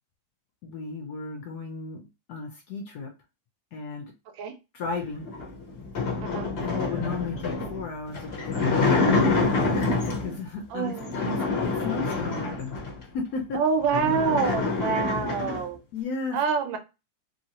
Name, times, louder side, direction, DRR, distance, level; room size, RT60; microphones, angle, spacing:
voice 1, 0.6-3.1 3.7-4.1 4.7-5.2 6.6-12.7 13.1-13.6 15.9-16.4, left 4 dB, 70° left, 1.0 m, -34 dB
sound 1, 5.2-10.4 11.0-13.0 13.5-13.6 13.8-15.7, left 3 dB, 50° left, 0.8 m, -26 dB
voice 2, 6.2-6.6 10.7-11.1 13.5-15.8 16.3-16.8, right 6 dB, 75° right, 1.3 m, -26 dB
3.1 x 2.7 x 2.7 m
omnidirectional pair, 2.2 m